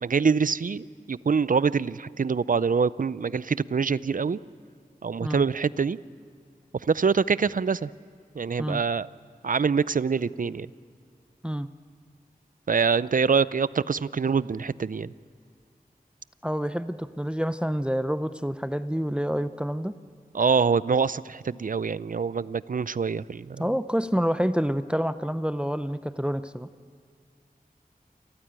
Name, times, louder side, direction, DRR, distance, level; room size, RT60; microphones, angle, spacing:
voice 1, 0.0-4.4 5.0-6.0 6.9-7.9 8.4-9.1 9.4-10.7 12.7-15.1 20.3-23.6, right 5 dB, 60° right, 18 dB, 0.5 m, -25 dB
voice 2, 16.4-20.0 23.6-26.7, equal, 5° right, 12 dB, 0.6 m, -28 dB
29.0 x 14.5 x 8.9 m, 2.2 s
wide cardioid pair, 55°, 15 cm